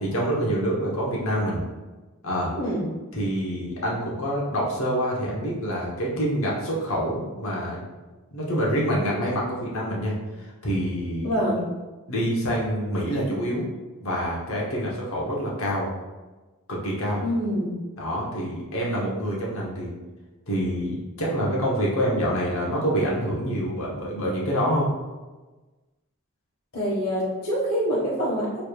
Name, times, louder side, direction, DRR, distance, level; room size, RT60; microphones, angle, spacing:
voice 1, 0.0-1.6 2.2-2.5 3.1-7.8 8.3-10.1 10.4-11.3 12.1-13.7 14.0-15.9 16.7-17.2 18.0-19.9 20.5-24.9, equal, 65° left, -3 dB, 1.0 m, -26 dB
voice 2, 11.2-11.6 17.2-17.7 26.7-28.5, equal, 90° left, -7 dB, 1.4 m, -25 dB
4.8 x 3.2 x 2.4 m, 1.2 s
head